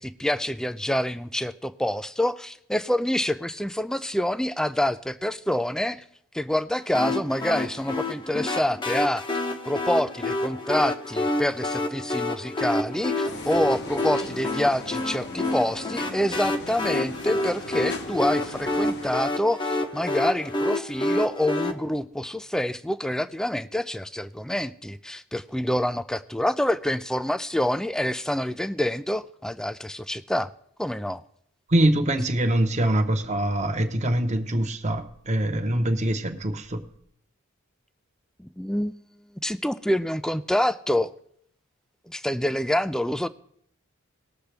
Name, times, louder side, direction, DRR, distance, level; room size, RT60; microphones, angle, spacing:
voice 1, 0.0-6.0 6.3-9.2 9.7-30.5 30.8-31.2 38.4-39.0 39.4-41.1 42.1-43.3, left 1 dB, 5° left, 14 dB, 0.3 m, -27 dB
sound 1, 6.9-21.7, left 1 dB, 20° left, 0.8 m, -28 dB
sound 2, 13.2-19.2, left 2 dB, 50° left, 0.9 m, -39 dB
voice 2, 31.7-36.8, right 1 dB, 35° right, 6 dB, 0.9 m, -24 dB
19.5 x 6.9 x 3.4 m, 0.66 s
head